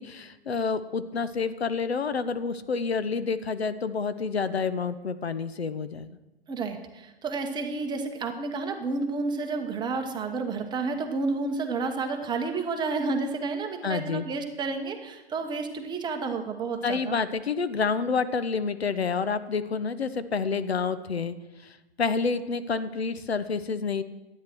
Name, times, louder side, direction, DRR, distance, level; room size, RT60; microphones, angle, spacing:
voice 1, 0.0-6.2 13.8-14.3 16.8-21.4 21.6-24.0, left 5 dB, 75° left, 12 dB, 0.9 m, -28 dB
voice 2, 6.5-17.1, right 4 dB, 15° right, 4 dB, 1.2 m, -30 dB
12.5 x 9.7 x 6.1 m, 1.1 s
figure-of-eight pair, 115°, 32 cm